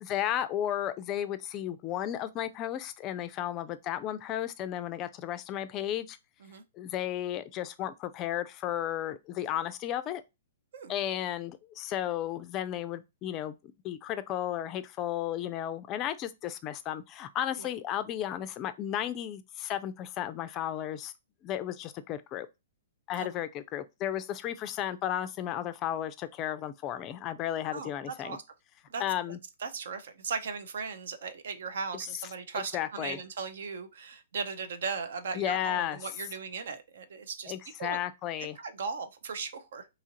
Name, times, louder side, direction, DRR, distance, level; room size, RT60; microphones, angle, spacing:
voice 1, 0.0-6.2 6.8-10.2 10.9-13.6 13.8-21.1 21.4-22.5 23.1-28.4 29.0-29.4 32.5-33.2 35.3-36.0 37.5-38.6, left 11 dB, 30° left, 0.3 m, -34 dB
voice 2, 27.7-28.4 28.9-29.0 29.6-37.5 37.8-38.0 38.6-39.9, right 5 dB, 70° right, 0.5 m, -37 dB
2.9 x 2.4 x 2.8 m
hypercardioid pair, 125°, 0 cm